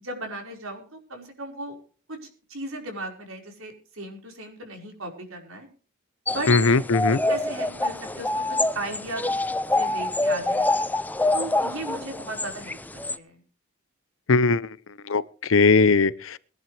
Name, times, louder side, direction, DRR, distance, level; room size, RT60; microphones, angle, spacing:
voice 1, 0.0-1.8 2.1-5.7 6.3-6.5 7.1-9.4 9.7-10.7 11.3-12.8 13.1-13.4, right 2 dB, 70° right, 5.0 m, -36 dB
sound 1, 6.3-13.2, left 2 dB, 10° left, 0.5 m, -26 dB
voice 2, 6.5-7.2 14.3-14.7 15.1-16.4, left 4 dB, 70° left, 0.7 m, -19 dB
22.0 x 11.0 x 3.3 m
head